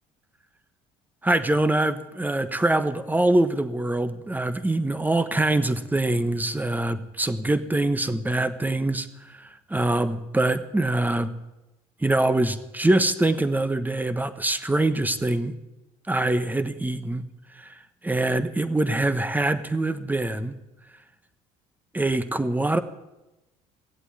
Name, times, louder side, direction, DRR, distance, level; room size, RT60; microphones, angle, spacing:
voice 1, 1.2-11.3 12.0-15.6 16.1-17.2 17.6-17.7 18.0-20.5 21.9-22.8, right 2 dB, 10° right, 11 dB, 1.2 m, -24 dB
16.5 x 8.2 x 9.7 m, 0.98 s
supercardioid pair, 70°, 18 cm